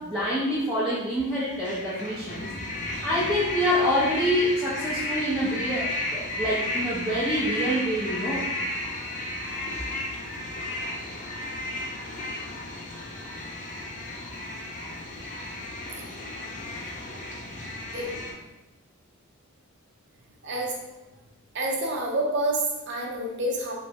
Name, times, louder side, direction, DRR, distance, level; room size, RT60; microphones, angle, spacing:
voice 1, 0.0-2.5 2.9-8.5, equal, 5° right, -10 dB, 0.7 m, -26 dB
sound 1, 1.2-18.3, left 1 dB, 35° left, 0.6 m, -33 dB
voice 2, 20.4-21.0 21.5-23.7, right 1 dB, 55° right, -1 dB, 0.7 m, -28 dB
3.3 x 3.2 x 2.8 m, 1.0 s
head